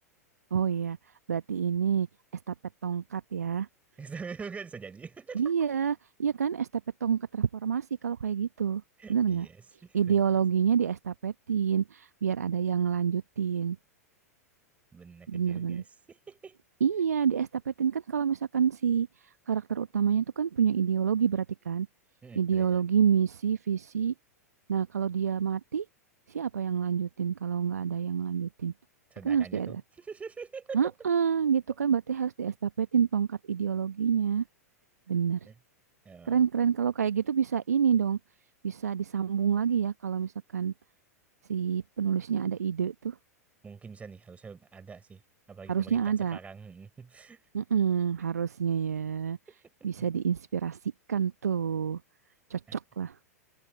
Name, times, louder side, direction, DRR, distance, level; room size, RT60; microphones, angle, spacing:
voice 1, 0.5-1.0 1.3-2.1 2.5-2.6 2.8-3.7 5.3-6.7 7.0-8.8 9.1-9.5 9.9-13.8 15.3-15.8 16.8-21.9 22.3-24.1 24.7-25.8 26.3-28.7 29.2-29.8 30.7-34.4 35.1-35.4 36.2-38.2 38.6-40.7 41.5-43.1 45.7-46.4 47.5-49.4 49.8-52.0 52.5-53.2, right 7 dB, 75° right, 1.1 m, -28 dB
voice 2, 4.0-5.4 9.0-9.6 9.8-10.2 14.9-15.8 16.1-16.5 22.2-22.8 29.1-30.8 35.5-35.6 36.0-36.4 43.6-45.2 45.5-47.4 49.8-49.9, right 5 dB, 15° right, 6.2 m, -44 dB
figure-of-eight pair, 95°, 9 cm